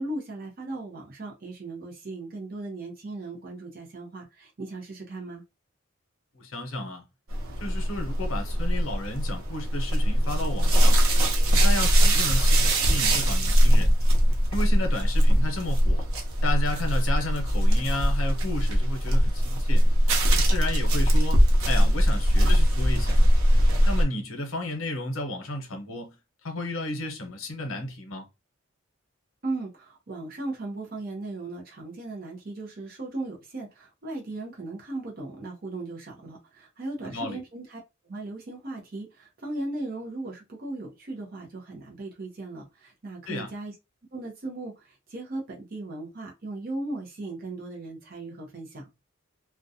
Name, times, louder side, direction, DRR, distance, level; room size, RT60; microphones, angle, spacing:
voice 1, 0.0-5.4 29.4-43.8 44.1-48.9, right 2 dB, 45° right, 0.6 m, -37 dB
voice 2, 6.3-7.0 7.6-11.0 11.6-13.9 14.5-16.1 16.4-19.8 20.3-23.2 23.8-26.2 26.4-28.3 37.1-37.4 43.3-43.5, left 1 dB, 75° left, 0.8 m, -33 dB
sound 1, 7.3-24.0, equal, 85° right, 0.7 m, -21 dB
2.4 x 2.2 x 2.7 m
head